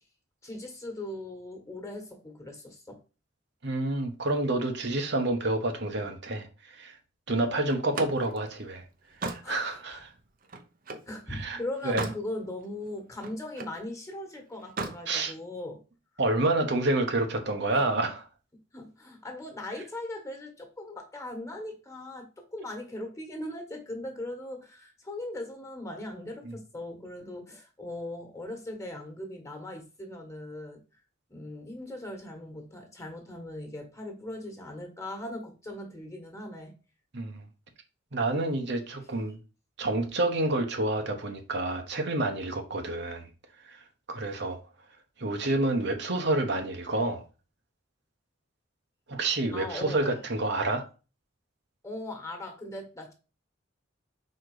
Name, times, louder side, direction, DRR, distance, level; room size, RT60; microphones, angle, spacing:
voice 1, 0.4-3.0 9.4-10.0 11.0-15.8 17.7-17.8 18.7-30.8 31.3-36.8 49.5-50.2 51.8-53.1, left 1 dB, 15° left, 1.5 m, -39 dB
voice 2, 3.6-6.5 6.7-6.9 7.3-8.8 9.2-10.1 11.3-11.6 11.8-12.1 15.1-15.3 16.2-18.2 26.4-26.6 37.1-37.4 38.1-39.4 39.8-43.3 43.7-43.8 44.1-44.6 45.2-47.2 49.1-50.8, right 2 dB, 65° right, 1.2 m, -28 dB
Slam, 7.7-11.1 11.6-12.3 12.7-13.8 14.6-15.0, right 3 dB, 50° right, 0.9 m, -38 dB
5.1 x 4.4 x 4.9 m
head